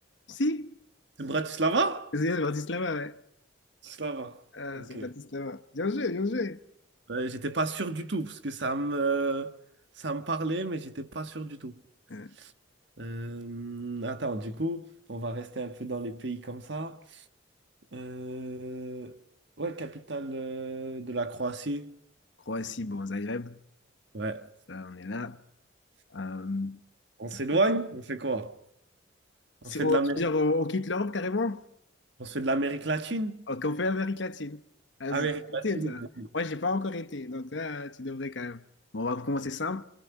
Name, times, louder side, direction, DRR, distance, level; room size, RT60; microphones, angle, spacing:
voice 1, 0.3-0.7 2.1-3.2 4.5-6.6 12.1-12.3 22.5-23.6 24.7-25.4 26.1-26.8 29.6-31.6 33.5-34.6 35.0-35.3 35.6-36.1 36.3-38.6 38.9-39.8, left 2 dB, 70° left, 1.1 m, -31 dB
voice 2, 1.2-2.1 3.8-4.4 4.8-5.1 7.1-9.6 10.0-11.8 12.4-12.5 13.0-17.2 17.9-19.2 19.6-21.9 24.1-24.5 27.2-28.6 29.6-30.2 32.2-33.5 35.1-36.3, right 2 dB, 65° right, 1.5 m, -31 dB
28.5 x 26.5 x 5.9 m
head